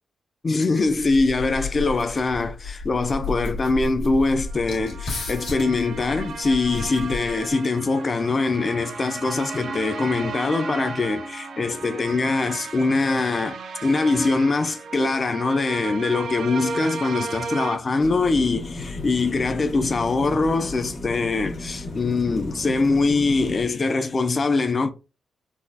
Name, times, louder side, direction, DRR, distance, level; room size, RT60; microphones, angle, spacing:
voice 1, 0.4-24.9, left 3 dB, 30° left, 0.4 m, -23 dB
sound 1, 0.8-7.5, left 3 dB, 85° left, 1.6 m, -33 dB
sound 2, 4.4-17.8, right 4 dB, 70° right, 0.5 m, -35 dB
sound 3, 18.0-23.7, left 2 dB, 60° left, 1.1 m, -35 dB
4.0 x 2.4 x 2.6 m
wide cardioid pair, 165°, 0 cm